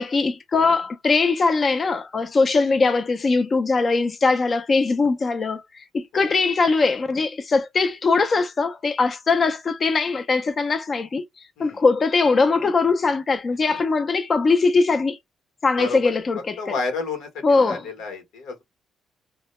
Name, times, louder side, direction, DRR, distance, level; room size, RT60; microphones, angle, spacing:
voice 1, 0.0-15.2 15.6-16.6 17.4-17.8, left 4 dB, 40° left, 0.3 m, -21 dB
voice 2, 15.8-16.2 16.6-18.6, left 4 dB, 90° left, 0.9 m, -31 dB
2.1 x 2.0 x 2.9 m
cardioid pair, 90°, 0 cm